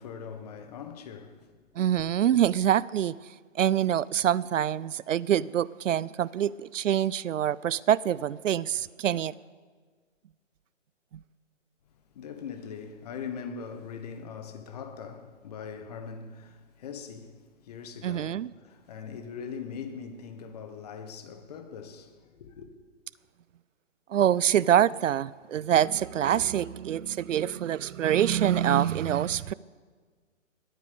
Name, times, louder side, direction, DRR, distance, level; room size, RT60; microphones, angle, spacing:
voice 1, 0.0-1.5 12.1-22.7, left 6 dB, 30° left, 1.2 m, -41 dB
voice 2, 1.8-3.1 3.6-9.3 18.0-18.5 24.1-29.5, right 10 dB, 75° right, 0.5 m, -25 dB
20.5 x 8.9 x 6.8 m
hypercardioid pair, 160°, 38 cm